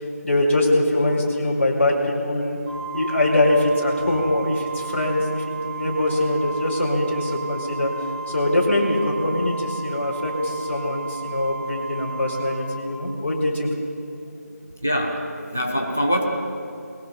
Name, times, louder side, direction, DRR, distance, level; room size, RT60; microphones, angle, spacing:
voice 1, 0.2-2.6 2.9-7.9 8.3-13.7, left 1 dB, 45° left, -3 dB, 4.9 m, -22 dB
Organ, 2.7-13.4, right 4 dB, 45° right, 3.8 m, -34 dB
voice 2, 14.8-16.2, equal, 5° left, 1 dB, 0.4 m, -24 dB
23.0 x 20.5 x 5.5 m, 2.8 s
figure-of-eight pair, 175°, 9 cm